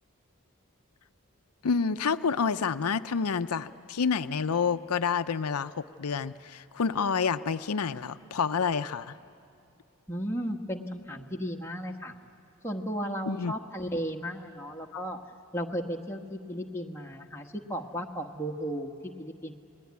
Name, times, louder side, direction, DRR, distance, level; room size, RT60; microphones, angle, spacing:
voice 1, 1.6-9.1 13.3-13.5 14.9-15.0, left 5 dB, 85° left, 11 dB, 0.6 m, -28 dB
voice 2, 10.1-12.1 12.6-15.2 15.5-19.5, equal, 10° left, 0 dB, 1.2 m, -35 dB
29.5 x 20.0 x 9.5 m, 2.5 s
head